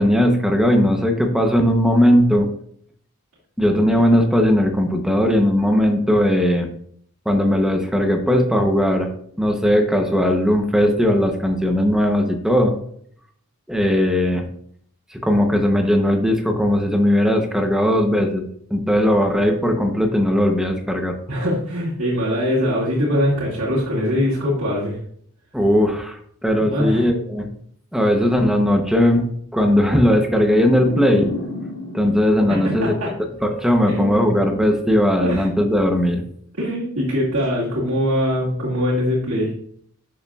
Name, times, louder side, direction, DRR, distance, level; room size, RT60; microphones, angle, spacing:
voice 1, 0.0-2.5 3.6-6.7 7.3-9.1 9.4-12.7 13.7-14.4 15.1-21.2 25.5-27.5 27.9-31.3 31.9-32.9 33.4-36.2, equal, ahead, 3 dB, 0.8 m, -18 dB
voice 2, 21.3-25.0 26.6-27.1 32.5-33.1 33.9-34.3 35.2-35.5 36.6-39.5, equal, 75° right, -7 dB, 2.3 m, -22 dB
sound 1, 30.5-33.5, left 2 dB, 90° left, 2.7 m, -32 dB
11.5 x 6.8 x 2.4 m, 0.64 s
head